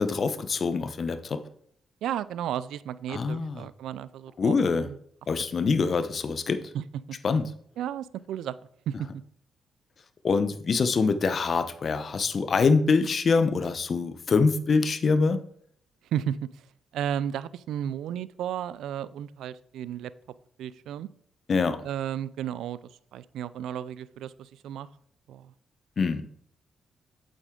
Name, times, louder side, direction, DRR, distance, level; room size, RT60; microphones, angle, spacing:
voice 1, 0.0-1.4 3.1-3.7 4.4-4.9 5.3-6.7 7.2-7.4 10.2-15.4 21.5-21.8 26.0-26.3, left 4 dB, 50° left, 11 dB, 0.8 m, -24 dB
voice 2, 2.0-5.0 6.7-6.8 7.8-8.6 8.9-9.1 16.1-16.6 16.9-20.1 20.6-21.1 21.8-22.8 23.1-24.9 25.3-25.5, right 10 dB, 80° right, 18 dB, 0.3 m, -33 dB
8.3 x 7.6 x 3.8 m, 0.64 s
supercardioid pair, 55°, 0 cm